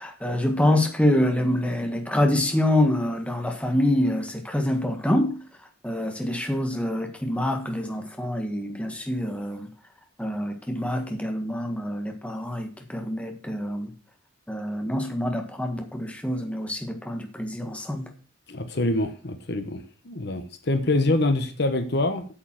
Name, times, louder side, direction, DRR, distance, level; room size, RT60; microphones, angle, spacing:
voice 1, 0.0-5.3 5.8-9.7 10.2-13.9 14.5-18.1, left 1 dB, 5° left, 4 dB, 1.6 m, -26 dB
voice 2, 18.5-22.3, left 2 dB, 55° left, 8 dB, 1.1 m, -25 dB
8.6 x 7.3 x 7.5 m, 0.39 s
head